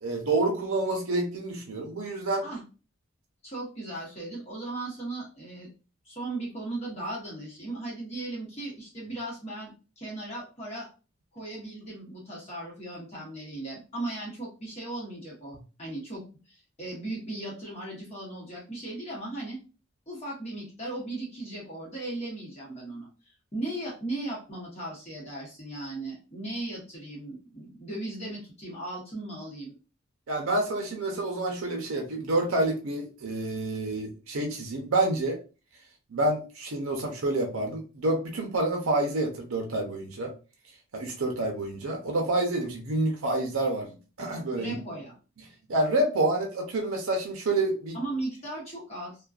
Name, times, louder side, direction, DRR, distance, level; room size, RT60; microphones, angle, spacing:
voice 1, 0.0-2.5 30.3-35.4 36.1-40.3 40.9-44.7 45.7-48.0, right 2 dB, 80° right, 1 dB, 0.6 m, -28 dB
voice 2, 3.4-5.7 6.0-10.9 11.3-19.6 20.1-29.7 44.6-45.1 47.9-49.2, right 2 dB, 30° left, -4 dB, 0.8 m, -37 dB
2.5 x 2.1 x 2.3 m, 0.34 s
head